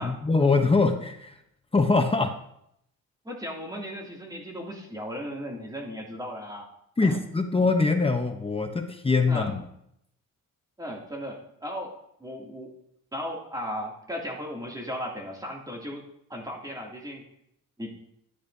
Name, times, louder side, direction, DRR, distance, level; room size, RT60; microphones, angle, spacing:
voice 1, 0.0-1.4 1.7-2.4 7.0-9.6, left 3 dB, 15° left, 5 dB, 0.8 m, -23 dB
voice 2, 3.2-6.7 7.0-7.2 9.3-9.5 10.8-11.9 12.2-12.7 13.1-16.0 16.3-17.3 17.8-18.0, equal, 10° right, -1 dB, 2.6 m, -36 dB
13.5 x 10.5 x 2.7 m, 0.75 s
cardioid pair, 115°, 33 cm